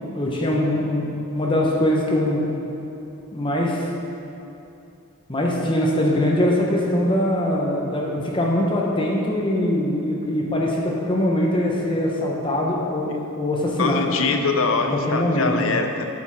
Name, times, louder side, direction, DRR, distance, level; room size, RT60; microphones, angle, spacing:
voice 1, 0.0-2.4 3.3-3.9 5.3-14.1 14.9-15.5, left 1 dB, 20° left, -2 dB, 1.0 m, -22 dB
voice 2, 13.8-16.0, left 4 dB, 70° left, 5 dB, 0.7 m, -23 dB
9.5 x 6.9 x 4.9 m, 2.8 s
head